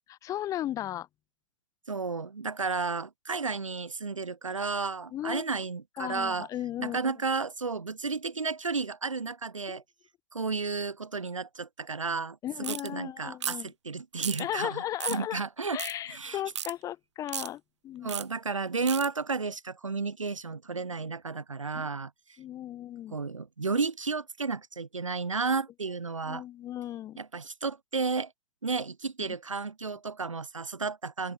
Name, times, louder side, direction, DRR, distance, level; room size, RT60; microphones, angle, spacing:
voice 1, 0.1-1.1 5.1-5.5 6.0-7.1 9.7-9.8 12.4-13.7 14.4-15.4 15.7-18.1 21.7-21.9 22.4-23.2 26.2-27.2, left 12 dB, 20° left, 0.9 m, -36 dB
voice 2, 1.9-6.5 6.8-9.8 10.3-14.8 15.1-15.8 16.1-16.4 18.0-22.1 23.1-26.4 27.2-28.3 28.6-31.3, right 4 dB, 90° right, 0.9 m, -32 dB
sound 1, 12.6-12.9 13.4-13.7 14.2-14.4 15.0-15.2 15.8-15.9 16.5-16.7 17.3-17.5 18.1-18.2 18.9-19.1, right 9 dB, 65° right, 0.6 m, -34 dB
open air
figure-of-eight pair, 115°, 16 cm